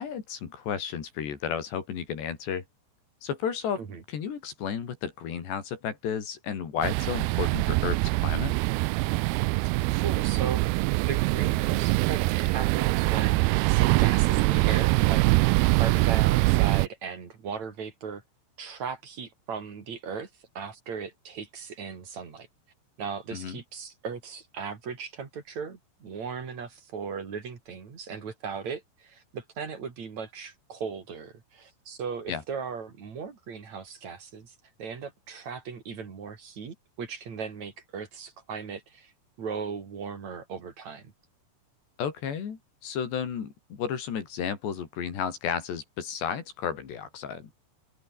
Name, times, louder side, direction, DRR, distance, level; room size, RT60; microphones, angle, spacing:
voice 1, 0.0-2.6 3.2-3.8 4.1-8.6 23.3-23.6 32.3-32.4 42.0-47.5, left 7 dB, 75° left, 5.7 m, -33 dB
sound 1, 6.8-16.9, right 24 dB, 85° right, 2.2 m, -23 dB
voice 2, 9.6-18.2 18.6-20.3 20.5-22.5 23.0-39.1 39.4-41.1, right 6 dB, 45° right, 4.3 m, -37 dB
open air
omnidirectional pair, 4.9 m